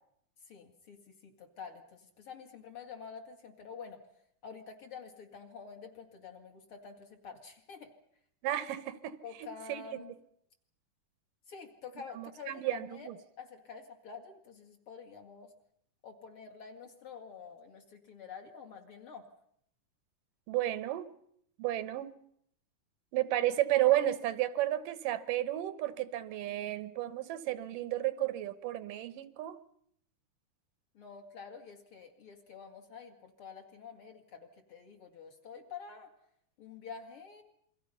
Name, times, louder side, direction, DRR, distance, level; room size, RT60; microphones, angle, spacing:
voice 1, 0.5-4.0 4.4-7.9 9.2-10.1 11.5-13.1 13.4-15.5 16.0-19.2 30.9-36.1 36.6-37.4, left 6 dB, 45° left, 4 dB, 2.8 m, -48 dB
voice 2, 8.4-10.0 12.1-13.2 20.5-21.1 21.6-22.1 23.1-29.6, right 14 dB, 85° right, 14 dB, 2.7 m, -32 dB
28.0 x 23.0 x 5.6 m, 0.70 s
omnidirectional pair, 3.8 m